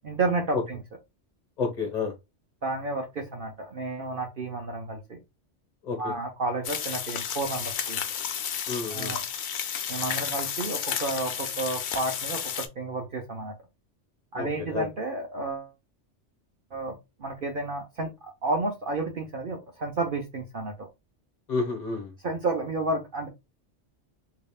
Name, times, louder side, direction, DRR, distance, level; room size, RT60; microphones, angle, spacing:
voice 1, 0.0-0.8 2.6-5.2 6.0-8.0 8.9-9.2 9.9-13.5 14.3-15.7 16.7-20.9 22.2-23.3, right 2 dB, 50° right, 2 dB, 0.9 m, -31 dB
voice 2, 1.6-2.1 5.8-6.1 8.7-9.1 14.3-14.9 21.5-22.1, left 4 dB, 40° left, 3 dB, 1.3 m, -30 dB
sound 1, 6.6-12.7, left 8 dB, 70° left, 0.9 m, -32 dB
5.2 x 2.8 x 2.3 m, 0.23 s
omnidirectional pair, 1.2 m